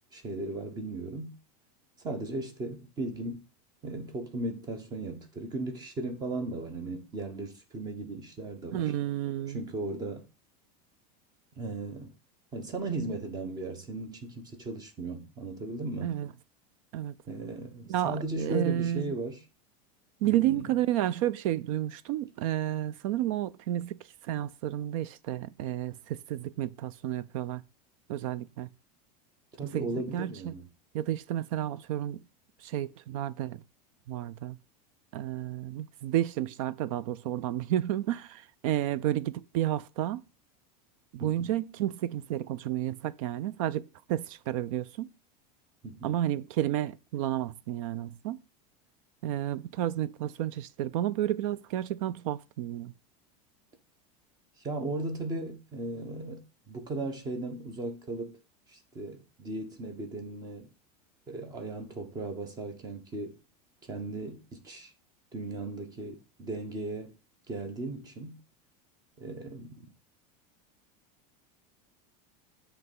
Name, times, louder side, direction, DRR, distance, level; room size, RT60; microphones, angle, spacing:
voice 1, 0.1-1.3 2.0-3.5 3.8-8.9 9.5-10.3 11.6-12.1 12.5-16.2 17.3-19.4 20.2-20.7 29.6-30.7 41.2-41.5 45.8-46.2 54.6-58.4 58.7-60.7 61.3-63.4 63.9-64.9 65.3-67.1 67.5-68.4 69.2-69.9, right 2 dB, 20° right, 1.1 m, -37 dB
voice 2, 8.7-9.6 16.0-16.3 16.9-17.1 17.9-19.1 20.2-24.0 24.3-27.6 28.1-28.7 29.7-30.5 30.9-32.2 32.6-33.6 34.1-34.6 35.1-40.2 41.1-45.1 46.0-48.4 49.2-52.9, right 12 dB, 55° right, 0.4 m, -31 dB
7.9 x 3.3 x 5.3 m
supercardioid pair, 170°, 21 cm